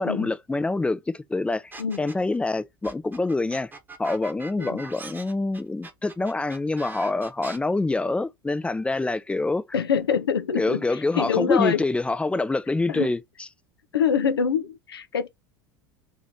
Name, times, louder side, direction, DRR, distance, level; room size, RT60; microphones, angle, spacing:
voice 1, 0.0-1.7 2.0-3.7 4.0-9.6 10.6-13.2, left 2 dB, 10° left, 0.4 m, -26 dB
sound 1, 1.7-2.4 2.8-7.6, right 3 dB, 15° right, 0.9 m, -41 dB
voice 2, 9.7-11.8 12.9-13.1 13.9-15.3, left 7 dB, 85° left, 0.5 m, -25 dB
3.0 x 2.7 x 3.6 m
hypercardioid pair, 80°, 12 cm